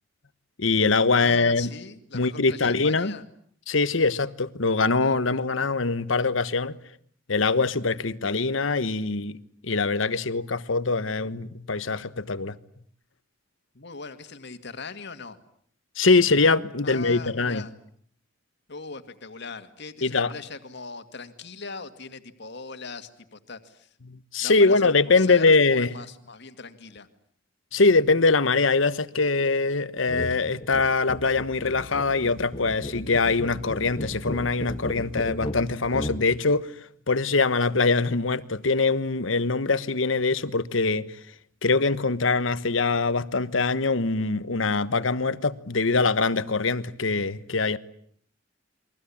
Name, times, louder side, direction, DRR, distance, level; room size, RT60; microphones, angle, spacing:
voice 1, 0.6-1.7 2.1-3.1 3.7-6.8 7.3-9.4 9.6-12.6 16.0-17.6 20.0-20.3 24.1-25.9 27.7-36.7 37.1-41.1 41.6-47.8, left 3 dB, 80° left, 1.3 m, -23 dB
voice 2, 1.2-3.2 13.7-15.4 16.8-17.7 18.7-24.0 24.4-27.1, left 4 dB, 60° left, 2.2 m, -40 dB
sound 1, 30.1-30.3 30.6-36.2, left 1 dB, 30° left, 2.0 m, -35 dB
29.5 x 23.0 x 8.7 m
head